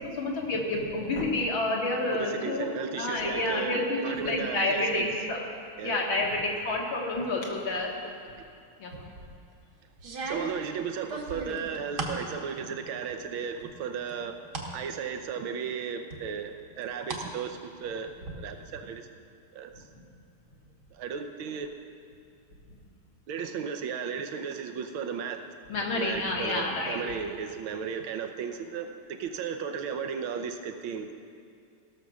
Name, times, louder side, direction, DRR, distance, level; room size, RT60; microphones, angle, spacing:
voice 1, 0.0-2.7 3.0-5.4 5.8-7.9 8.8-8.9 25.7-27.0, left 2 dB, 70° left, -2 dB, 2.4 m, -29 dB
voice 2, 2.1-5.0 5.8-6.0 10.3-14.4 14.7-19.1 19.5-19.9 20.9-21.7 23.3-25.4 26.0-31.1, right 6 dB, 75° right, 6 dB, 1.6 m, -35 dB
sound 1, 8.9-9.3 10.0-12.2 12.7-13.3 13.6-14.7 15.2-15.3 16.1-17.3 17.6-18.3, right 3 dB, 55° right, 1.7 m, -37 dB
16.5 x 6.7 x 6.2 m, 2.3 s
omnidirectional pair, 2.3 m